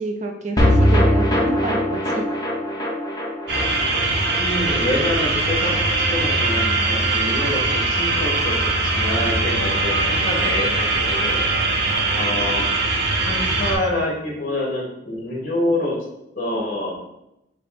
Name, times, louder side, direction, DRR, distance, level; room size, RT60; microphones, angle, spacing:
voice 1, 0.0-2.3, right 2 dB, 40° right, 3 dB, 0.4 m, -29 dB
sound 1, 0.6-7.0 7.3-7.4 7.6-7.7, equal, 20° left, 0.8 m, -22 dB
sound 2, 3.5-13.7, right 2 dB, 60° right, 0.8 m, -21 dB
voice 2, 4.4-7.6 7.9-8.5 8.8-12.7 13.3-15.9 16.3-17.0, left 1 dB, 45° left, -3 dB, 1.6 m, -26 dB
5.2 x 2.4 x 4.2 m, 0.85 s
head